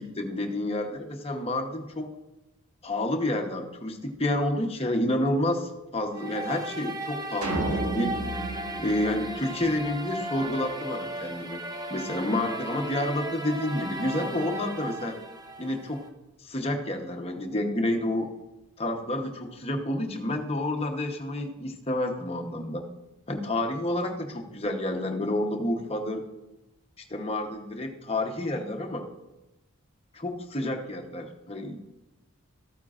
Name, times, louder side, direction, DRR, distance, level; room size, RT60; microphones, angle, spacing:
voice 1, 0.0-2.1 2.8-8.1 8.8-11.6 11.9-15.2 15.6-16.0 16.4-18.3 18.8-22.9 23.3-26.2 27.1-29.1 30.1-31.8, left 1 dB, 25° left, 3 dB, 0.9 m, -29 dB
sound 1, 6.1-16.1, right 2 dB, 15° right, 0.5 m, -36 dB
sound 2, 7.4-9.9, right 2 dB, 90° right, 1.8 m, -32 dB
13.0 x 9.1 x 2.5 m, 1.0 s
head